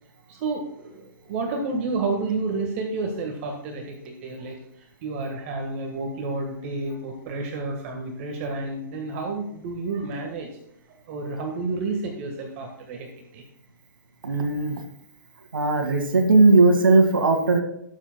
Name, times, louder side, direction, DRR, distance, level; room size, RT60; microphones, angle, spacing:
voice 1, 0.3-10.5 11.1-13.4, right 3 dB, 40° right, 3 dB, 1.6 m, -30 dB
voice 2, 14.2-14.8 15.5-17.6, right 3 dB, 80° right, 4 dB, 2.1 m, -18 dB
19.5 x 7.4 x 2.3 m, 0.77 s
hypercardioid pair, 140°, 11 cm